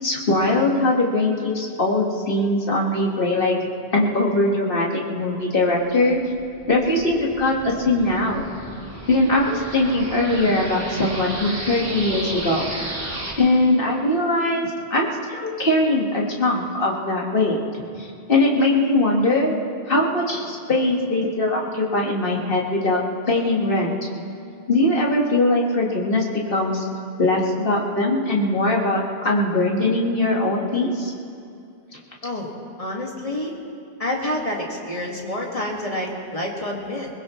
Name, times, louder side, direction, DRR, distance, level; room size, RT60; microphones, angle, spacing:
voice 1, 0.0-3.5 3.9-6.2 6.7-8.4 9.1-12.7 13.4-17.6 18.0-19.6 19.9-23.0 23.3-23.9 24.7-26.2 26.5-26.8 27.2-31.1, left 2 dB, 60° left, -1 dB, 2.0 m, -21 dB
sound 1, 6.0-13.3, right 1 dB, 60° right, 2.6 m, -34 dB
voice 2, 32.8-33.5 34.0-37.1, left 1 dB, 35° left, -2 dB, 2.1 m, -28 dB
22.5 x 20.5 x 3.2 m, 2.5 s
omnidirectional pair, 1.1 m